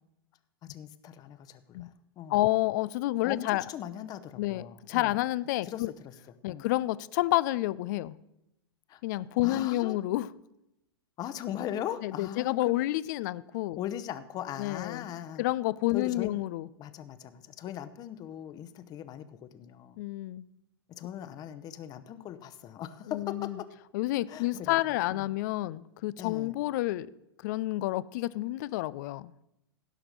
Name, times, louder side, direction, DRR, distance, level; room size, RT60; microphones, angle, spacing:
voice 1, 0.7-1.9 2.2-2.4 3.2-5.2 5.6-6.1 6.5-6.6 8.9-9.0 9.4-10.0 11.2-12.7 13.8-15.4 15.9-16.3 16.8-20.0 20.9-23.7 24.3-24.8 25.1-25.3 26.2-26.5, left 10 dB, 30° left, 12 dB, 0.9 m, -39 dB
voice 2, 2.3-3.6 4.4-5.9 6.4-8.2 9.0-10.3 12.0-13.8 14.6-15.0 15.4-16.7 20.0-20.5 23.1-23.6 23.9-27.1 27.4-29.3, left 17 dB, 50° left, 19 dB, 0.4 m, -29 dB
16.5 x 5.9 x 6.6 m, 0.86 s
figure-of-eight pair, 100°, 13 cm